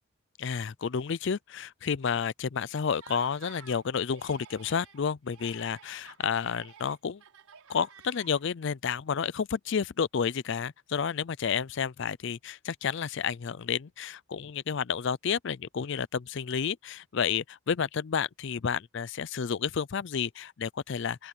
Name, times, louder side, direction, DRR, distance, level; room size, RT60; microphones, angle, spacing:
voice 1, 0.4-7.2 7.7-21.3, left 6 dB, 55° left, 0.4 m, -31 dB
Laughter, 2.9-3.8 4.1-5.0 5.3-8.6, right 7 dB, 85° right, 5.9 m, -52 dB
open air
head